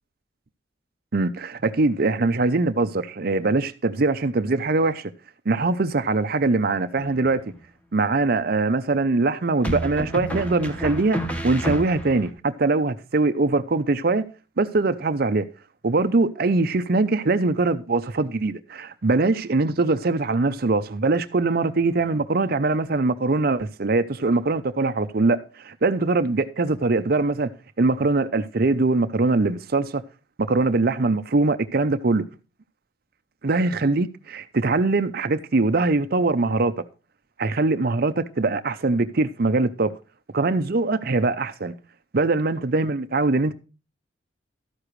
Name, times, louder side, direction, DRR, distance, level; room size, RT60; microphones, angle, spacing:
voice 1, 1.1-5.1 5.5-7.4 7.9-14.2 14.6-15.5 15.8-27.5 27.8-30.0 30.4-32.2 33.4-36.7 37.4-39.9 40.3-41.7 42.1-43.5, right 3 dB, 50° right, 0.6 m, -22 dB
sound 1, 7.0-7.6 9.6-12.3, equal, 5° left, 1.4 m, -30 dB
13.0 x 9.8 x 3.2 m
head